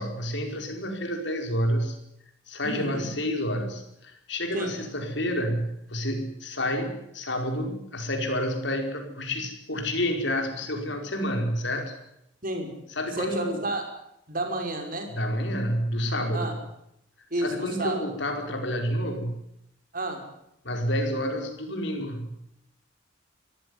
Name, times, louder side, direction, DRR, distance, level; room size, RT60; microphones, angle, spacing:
voice 1, 0.0-2.0 2.5-11.9 12.9-13.6 15.1-16.5 17.3-19.4 20.6-22.3, equal, 65° left, 4 dB, 4.9 m, -29 dB
voice 2, 2.6-3.1 4.5-4.8 12.4-12.7 13.2-13.8 14.3-15.1 16.3-16.5 17.3-18.0 19.9-20.2, right 1 dB, 45° right, 4 dB, 5.5 m, -30 dB
24.0 x 15.0 x 9.7 m, 0.80 s
head